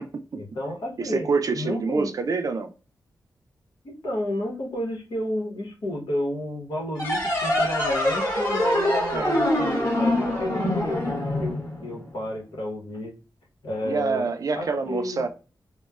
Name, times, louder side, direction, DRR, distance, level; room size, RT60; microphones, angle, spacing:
voice 1, 0.3-1.3 1.5-2.1 3.8-10.6 10.9-11.0 11.4-13.1 13.6-15.2, left 1 dB, 85° left, 1.0 m, -31 dB
voice 2, 1.0-2.7 9.1-9.3 13.8-15.3, right 4 dB, 55° right, 0.4 m, -26 dB
sound 1, 6.9-12.2, left 1 dB, 40° left, 1.2 m, -24 dB
3.0 x 2.1 x 2.3 m
wide cardioid pair, 120°, 7 cm